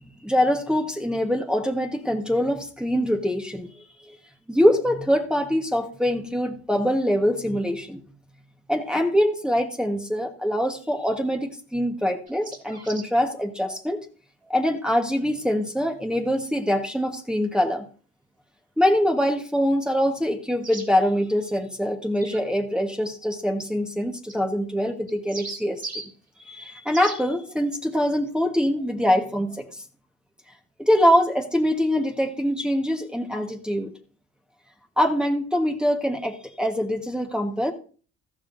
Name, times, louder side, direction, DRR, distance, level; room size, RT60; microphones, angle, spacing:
voice 1, 0.2-4.2 4.5-8.0 8.7-14.0 14.5-17.9 18.8-26.0 26.5-29.8 30.8-33.9 35.0-37.7, equal, 5° right, 2 dB, 1.3 m, -24 dB
sound 1, 12.3-13.1 16.3-16.4 20.6-20.9 22.2-22.4 24.3-24.4 25.1-26.1 26.9-27.2, right 3 dB, 25° right, 3.1 m, -37 dB
13.5 x 12.5 x 2.6 m, 0.41 s
cardioid pair, 90°, 30 cm